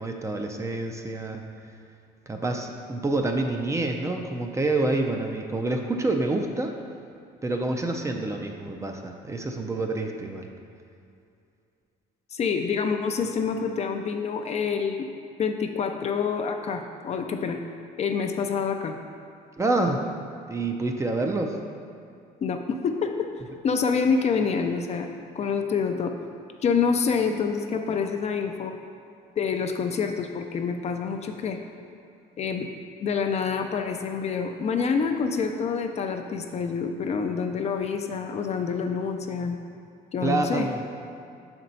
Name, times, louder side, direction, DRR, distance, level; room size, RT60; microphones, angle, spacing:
voice 1, 0.0-1.4 2.3-6.7 7.4-10.5 19.6-20.0 20.5-21.6 40.2-40.8, right 2 dB, 15° right, 3 dB, 0.5 m, -27 dB
voice 2, 12.3-15.1 15.4-17.6 18.0-19.0 22.4-23.3 23.6-26.1 26.6-28.7 29.4-31.6 32.4-32.7 33.0-39.6 40.1-40.7, left 5 dB, 40° left, 5 dB, 0.4 m, -27 dB
6.4 x 4.4 x 4.0 m, 2.5 s
cardioid pair, 110°, 17 cm